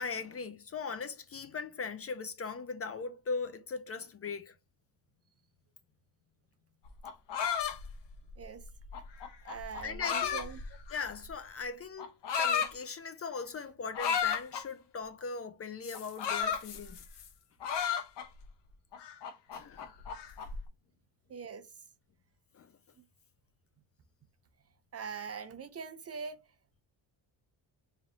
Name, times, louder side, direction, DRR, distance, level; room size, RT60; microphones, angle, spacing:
voice 1, 0.0-4.5 9.8-10.6 10.9-17.0 17.6-17.8 19.5-19.9 22.5-22.7, left 5 dB, 30° left, 0.5 m, -39 dB
sound 1, 6.9-11.3 12.0-12.7 13.9-14.6 15.8-17.3 17.6-18.5 18.9-20.6, left 7 dB, 60° left, 0.8 m, -34 dB
voice 2, 9.4-10.6 21.3-21.7 24.9-26.4, right 6 dB, 35° right, 0.4 m, -42 dB
3.4 x 2.7 x 3.7 m
cardioid pair, 105°, 47 cm